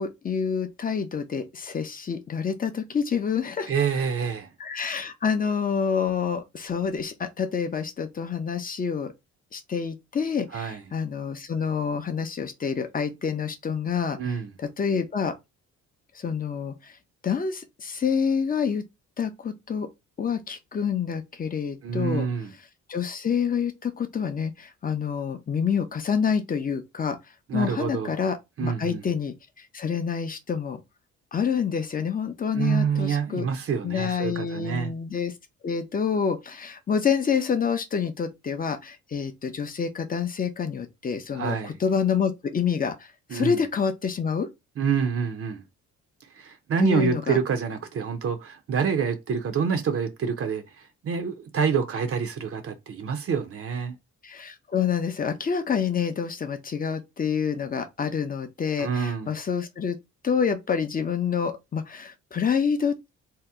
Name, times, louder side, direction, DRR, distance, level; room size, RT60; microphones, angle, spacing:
voice 1, 0.0-3.7 4.6-9.1 9.5-15.3 16.1-17.0 17.2-18.8 19.2-19.9 20.2-22.3 22.9-27.2 27.5-30.8 31.3-33.5 33.8-35.3 35.6-44.5 46.8-47.4 54.2-60.0 60.2-63.1, left 6 dB, 30° left, 0.6 m, -27 dB
voice 2, 3.7-4.5 10.5-10.8 14.2-14.5 21.8-22.5 27.5-28.1 28.6-29.0 32.5-34.9 41.3-41.8 43.3-43.6 44.8-45.6 46.3-54.0 58.8-59.3, right 6 dB, 50° right, 0.6 m, -27 dB
2.8 x 2.0 x 3.5 m
cardioid pair, 90°, 30 cm